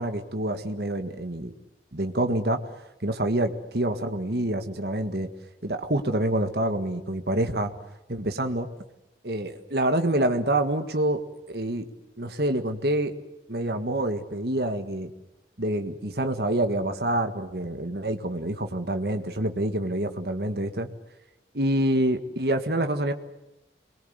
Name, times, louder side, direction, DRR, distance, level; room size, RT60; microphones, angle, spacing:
voice 1, 0.0-1.5 1.9-2.6 3.0-5.3 5.6-7.7 8.1-8.7 9.2-11.2 11.5-11.9 12.2-13.1 13.5-15.1 15.6-20.9 21.5-23.1, right 1 dB, 65° right, 7 dB, 1.7 m, -27 dB
26.5 x 22.0 x 8.1 m, 0.91 s
head